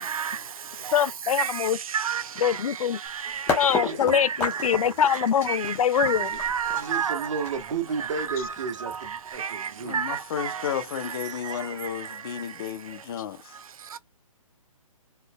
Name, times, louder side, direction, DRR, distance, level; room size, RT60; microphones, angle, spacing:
voice 1, 0.9-1.8 2.4-3.0 3.5-6.3, left 9 dB, 75° left, 0.4 m, -24 dB
sound 1, 3.1-3.2 3.5-9.3, left 4 dB, 15° left, 1.1 m, -32 dB
voice 2, 3.7-4.2 6.2-6.3 6.7-10.0 11.2-11.6, right 5 dB, 60° right, 1.4 m, -33 dB
voice 3, 6.0-7.2 9.9-10.2, right 8 dB, 75° right, 0.5 m, -27 dB
voice 4, 9.8-13.5, left 9 dB, 40° left, 0.8 m, -33 dB
4.5 x 3.1 x 2.2 m
hypercardioid pair, 155°, 18 cm